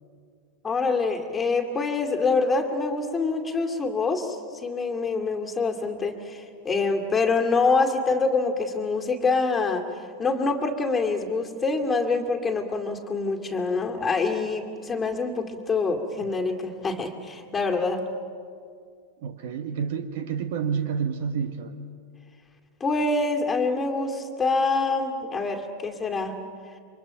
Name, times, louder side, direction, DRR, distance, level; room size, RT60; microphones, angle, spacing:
voice 1, 0.6-9.9 10.2-18.1 22.8-26.4, left 3 dB, 15° left, 3 dB, 2.3 m, -25 dB
voice 2, 19.2-21.8, right 7 dB, 50° right, 10 dB, 1.3 m, -29 dB
29.0 x 25.0 x 5.7 m, 2.3 s
figure-of-eight pair, 90°, 0 cm